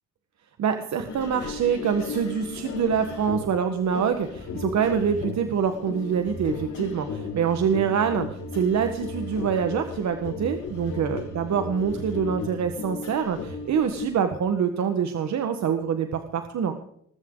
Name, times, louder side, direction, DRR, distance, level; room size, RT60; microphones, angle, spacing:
voice 1, 0.6-16.7, right 7 dB, 65° right, 7 dB, 1.5 m, -25 dB
sound 1, 1.1-14.1, left 4 dB, 75° left, 4.2 m, -35 dB
20.0 x 14.0 x 3.9 m, 0.70 s
cardioid pair, 90°, 30 cm